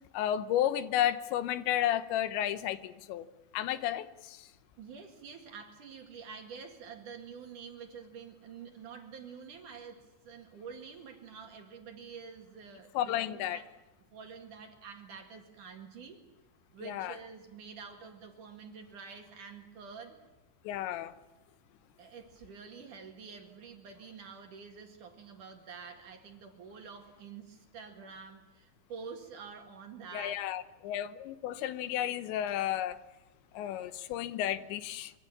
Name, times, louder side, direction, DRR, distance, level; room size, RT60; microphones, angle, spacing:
voice 1, 0.1-3.3 3.5-4.5 12.9-13.6 16.8-17.2 20.6-21.1 30.1-33.0 33.5-35.1, left 11 dB, 85° left, 12 dB, 3.3 m, -32 dB
voice 2, 4.8-13.7 14.1-16.2 16.7-20.2 22.0-30.5, right 5 dB, 55° right, 4 dB, 3.0 m, -48 dB
24.5 x 24.5 x 7.3 m, 1.0 s
omnidirectional pair, 5.1 m